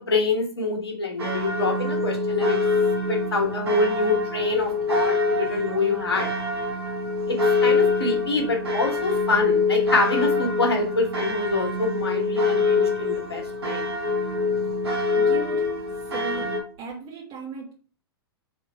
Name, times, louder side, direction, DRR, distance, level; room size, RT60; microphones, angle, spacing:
voice 1, 0.0-2.6 3.1-6.3 7.3-13.8, left 3 dB, 75° left, 2 dB, 1.3 m, -26 dB
sound 1, 1.2-16.6, left 3 dB, 75° right, 1.3 m, -25 dB
voice 2, 15.2-15.7 16.0-16.5 16.8-17.7, right 4 dB, 35° right, -2 dB, 1.2 m, -36 dB
3.7 x 3.1 x 4.5 m, 0.40 s
figure-of-eight pair, 100°, 13 cm